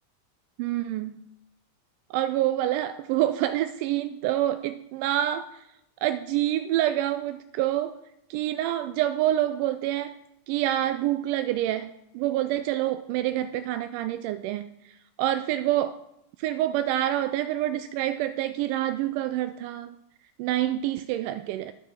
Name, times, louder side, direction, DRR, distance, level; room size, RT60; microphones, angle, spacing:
voice 1, 0.6-1.2 2.1-5.5 6.0-8.0 8.3-10.2 10.5-14.7 15.2-16.0 16.4-19.9 20.4-21.7, right 13 dB, 45° right, 12 dB, 0.3 m, -27 dB
11.5 x 4.5 x 4.4 m, 0.81 s
figure-of-eight pair, 90°, 0 cm